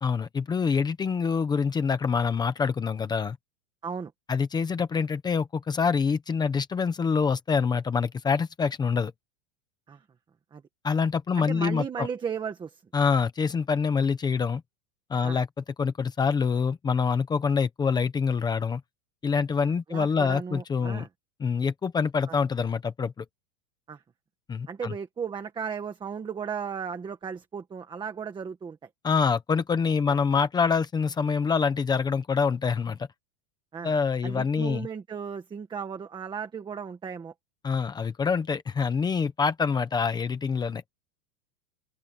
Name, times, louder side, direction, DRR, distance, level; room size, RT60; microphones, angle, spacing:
voice 1, 0.0-3.4 4.3-9.1 10.8-12.1 12.9-14.6 15.1-15.5 15.8-18.8 19.2-21.1 21.4-23.2 24.5-24.9 29.0-33.0 33.8-34.9 37.6-40.8, left 5 dB, 10° left, 0.8 m, -26 dB
voice 2, 11.4-12.8 15.2-15.4 19.9-21.1 22.3-22.4 23.9-24.0 24.7-28.8 30.1-30.2 33.7-33.9 34.2-37.3, right 6 dB, 10° right, 1.4 m, -35 dB
open air
supercardioid pair, 170°, 44 cm